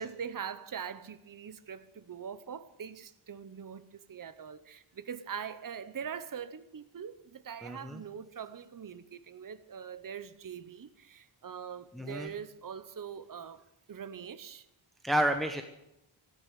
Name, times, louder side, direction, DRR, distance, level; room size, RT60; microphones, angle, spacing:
voice 1, 0.0-14.7, right 7 dB, 40° right, 0.9 m, -42 dB
voice 2, 7.6-8.0 11.9-12.3 15.0-15.6, right 1 dB, ahead, 1.1 m, -30 dB
14.5 x 10.0 x 9.2 m
wide cardioid pair, 115°, 50 cm